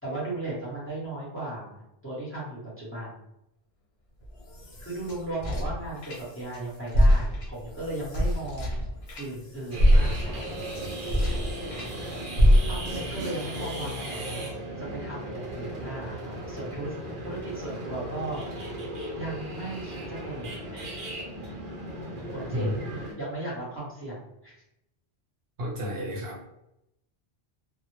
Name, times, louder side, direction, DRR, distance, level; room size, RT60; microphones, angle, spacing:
voice 1, 0.0-3.2 4.8-8.8 9.2-10.4 12.6-14.4 14.8-16.9 17.2-18.4 19.1-21.0 22.3-24.6, right 2 dB, 15° left, -7 dB, 0.9 m, -36 dB
sound 1, 4.2-6.6 6.9-11.9 12.4-13.1, equal, 75° left, 1.0 m, -24 dB
sound 2, 9.7-23.1, right 1 dB, 60° right, 0.8 m, -36 dB
voice 2, 25.6-26.5, left 1 dB, 80° right, -2 dB, 1.0 m, -31 dB
2.1 x 2.0 x 3.0 m, 0.84 s
omnidirectional pair, 1.0 m